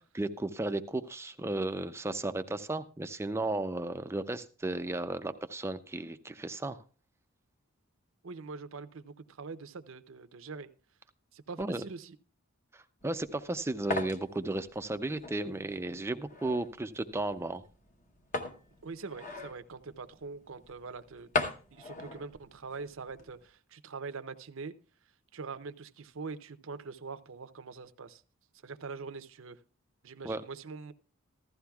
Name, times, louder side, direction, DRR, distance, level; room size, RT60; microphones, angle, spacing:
voice 1, 0.1-6.8 11.6-11.8 12.7-17.6 30.2-30.4, right 2 dB, 10° right, 9 dB, 0.4 m, -34 dB
voice 2, 8.2-10.7 11.3-12.2 18.8-24.7 25.3-28.2 28.6-29.6 30.0-30.9, right 4 dB, 60° right, 10 dB, 0.6 m, -43 dB
sound 1, 13.0-23.4, left 3 dB, 35° left, 0.9 m, -40 dB
15.5 x 13.0 x 2.3 m, 0.36 s
head